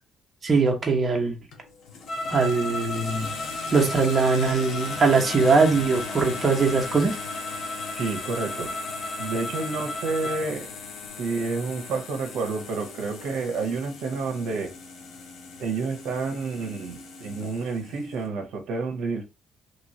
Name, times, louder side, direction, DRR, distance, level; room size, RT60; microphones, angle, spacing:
voice 1, 0.4-1.4 2.3-3.3 3.7-7.1, right 4 dB, 35° right, 1.1 m, -21 dB
sound 1, 1.5-18.3, left 5 dB, 80° left, 1.3 m, -39 dB
sound 2, 2.1-10.5, left 1 dB, 40° left, 0.8 m, -35 dB
voice 2, 7.9-8.7 9.2-10.7 11.2-14.7 15.6-19.2, right 4 dB, 80° right, 0.8 m, -29 dB
3.0 x 3.0 x 2.7 m
cardioid pair, 90°, 0 cm